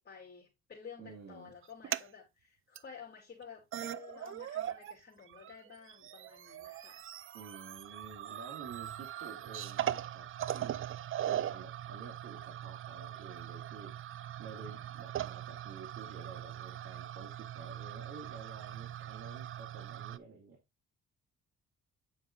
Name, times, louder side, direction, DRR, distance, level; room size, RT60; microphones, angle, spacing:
voice 1, 0.0-7.0, left 6 dB, 35° left, 3.2 m, -52 dB
voice 2, 1.0-1.5 7.3-10.8 11.3-13.9 14.4-20.6, right 4 dB, 60° right, 2.6 m, -50 dB
sound 1, 1.6-2.1 2.8-2.9 3.4-3.5 3.7-5.0 5.2-20.2, right 11 dB, 45° right, 0.4 m, -40 dB
9.2 x 5.2 x 2.7 m
cardioid pair, 90°, 30 cm